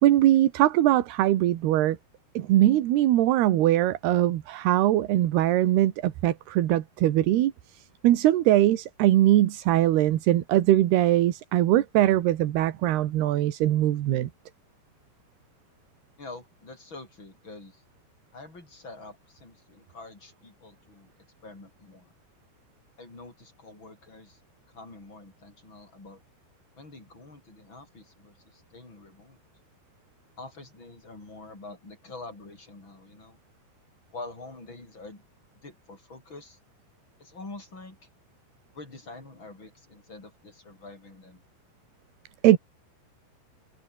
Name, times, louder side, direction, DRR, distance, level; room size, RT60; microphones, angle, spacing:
voice 1, 0.0-2.0 2.3-14.3 42.4-42.6, right 13 dB, 70° right, 3.3 m, -21 dB
voice 2, 16.2-17.8 18.3-21.1 21.4-22.1 23.0-24.4 24.7-26.2 26.8-29.4 30.4-33.4 34.1-35.2 35.6-36.6 37.2-38.0 38.7-41.4, left 3 dB, 25° left, 8.2 m, -46 dB
omnidirectional pair, 5.0 m